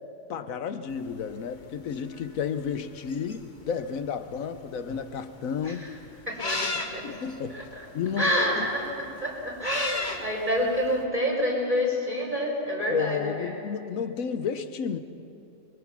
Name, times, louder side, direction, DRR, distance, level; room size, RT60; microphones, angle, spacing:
voice 1, 0.3-5.9 7.0-7.7 7.9-8.7 12.4-12.5 12.9-15.0, left 6 dB, 90° left, 10 dB, 1.3 m, -32 dB
sound 1, 0.9-11.0, left 3 dB, 35° left, 1.4 m, -36 dB
voice 2, 6.3-7.1 7.5-7.6 8.2-13.5, equal, 30° right, -4 dB, 5.5 m, -28 dB
26.0 x 22.0 x 6.0 m, 2.9 s
omnidirectional pair, 1.4 m